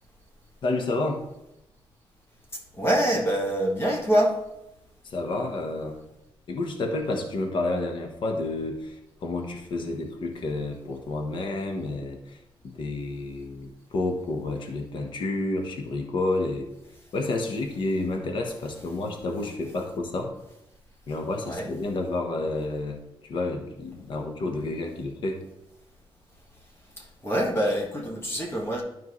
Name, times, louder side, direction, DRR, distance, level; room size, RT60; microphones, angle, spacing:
voice 1, 0.6-1.2 5.0-6.0 6.5-12.4 12.6-16.7 17.1-20.3 21.1-25.4, left 2 dB, 60° left, 3 dB, 1.1 m, -30 dB
voice 2, 2.8-4.4 21.4-21.7 27.0-28.8, equal, 25° left, -1 dB, 1.7 m, -25 dB
12.0 x 4.5 x 3.1 m, 0.87 s
cardioid pair, 115°, 10 cm